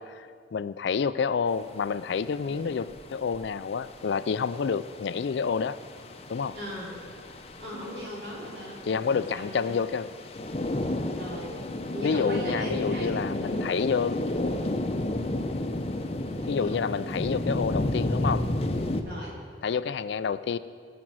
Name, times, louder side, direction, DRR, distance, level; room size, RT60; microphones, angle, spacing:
voice 1, 0.0-5.8 6.3-6.5 8.9-10.1 12.0-14.2 16.5-18.5 19.6-20.6, left 6 dB, 70° left, 15 dB, 0.4 m, -28 dB
sound 1, 1.5-19.0, left 1 dB, 35° left, 0.7 m, -32 dB
voice 2, 6.5-6.9 7.6-9.7 11.1-11.6 11.9-13.1 13.4-13.7 16.2-16.8 19.0-19.3, equal, 60° right, -4 dB, 3.4 m, -38 dB
18.0 x 6.1 x 6.2 m, 2.1 s
head